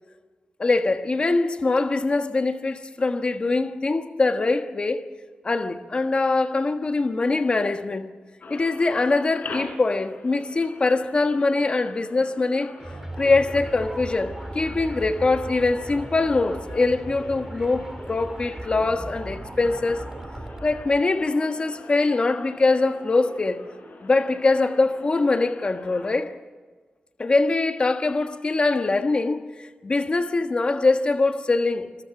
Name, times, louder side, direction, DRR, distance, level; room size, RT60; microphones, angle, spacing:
voice 1, 0.6-5.0 5.4-8.1 8.5-12.7 13.2-20.1 20.6-23.6 24.0-26.3 27.2-31.9, left 3 dB, 35° left, 1.4 m, -23 dB
sound 1, 8.4-26.2, left 2 dB, 65° left, 4.4 m, -44 dB
sound 2, 12.8-21.0, right 1 dB, 15° right, 2.2 m, -37 dB
27.5 x 21.5 x 6.1 m
wide cardioid pair, 160°, 3 cm